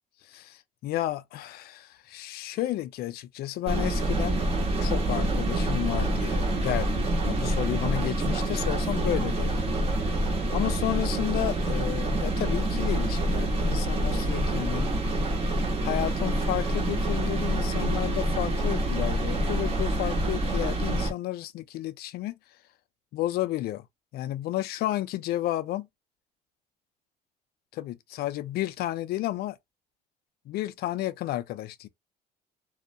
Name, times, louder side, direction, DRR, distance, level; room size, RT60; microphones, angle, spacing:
voice 1, 0.2-4.4 4.8-10.3 10.5-14.9 15.8-22.3 23.1-23.9 24.1-25.9 27.7-29.6 30.5-31.9, left 14 dB, 65° left, 0.4 m, -32 dB
sound 1, 3.7-21.1, right 1 dB, 35° right, 0.9 m, -27 dB
2.3 x 2.1 x 2.6 m
cardioid pair, 110°, 17 cm